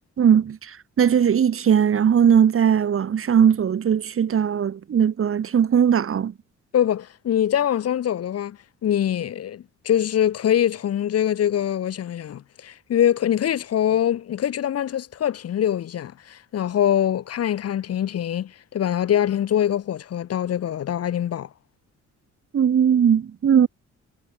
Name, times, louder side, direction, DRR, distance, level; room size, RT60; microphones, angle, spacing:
voice 1, 0.2-6.3 22.5-23.7, right 8 dB, 45° right, 1.6 m, -19 dB
voice 2, 6.7-21.5, left 10 dB, 55° left, 1.0 m, -23 dB
cardioid pair, 90°, 30 cm